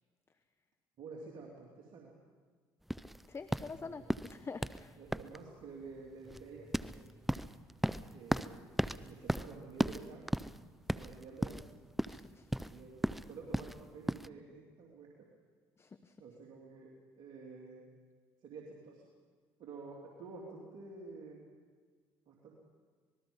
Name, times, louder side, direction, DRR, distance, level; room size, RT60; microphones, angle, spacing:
voice 1, 1.0-2.1 3.8-4.0 5.0-7.2 8.1-8.7 9.0-10.3 10.9-11.8 12.7-15.1 16.2-17.8 18.4-19.0 19.6-21.4 22.3-22.5, right 4 dB, 65° right, -2 dB, 3.2 m, -50 dB
sound 1, 2.9-14.3, equal, ahead, 0.6 m, -37 dB
voice 2, 3.3-5.0 12.1-12.7 15.8-16.2, left 4 dB, 30° left, 10 dB, 1.0 m, -47 dB
26.0 x 20.0 x 5.5 m, 1.5 s
supercardioid pair, 75°, 9 cm